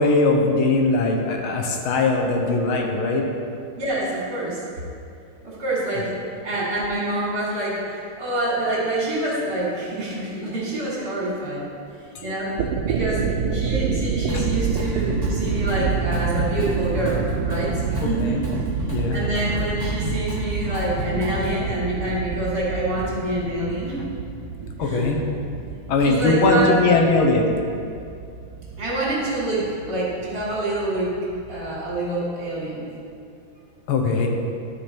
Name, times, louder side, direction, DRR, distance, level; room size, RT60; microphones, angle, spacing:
voice 1, 0.0-3.3 14.3-14.5 18.0-18.4 18.9-19.2 24.8-25.2 25.9-27.5 33.9-34.3, left 3 dB, 75° left, 1 dB, 1.7 m, -20 dB
voice 2, 3.8-4.6 5.4-6.1 6.4-12.5 12.8-13.2 13.5-24.0 24.8-25.1 26.0-27.1 28.8-31.2 31.5-32.9, right 1 dB, 55° right, -6 dB, 2.8 m, -26 dB
sound 1, 12.4-32.1, right 6 dB, 85° right, 1.5 m, -28 dB
Drum kit, 14.3-14.8 15.1-21.6, left 1 dB, 10° left, 2.0 m, -31 dB
12.5 x 4.9 x 4.4 m, 2.5 s
omnidirectional pair, 2.3 m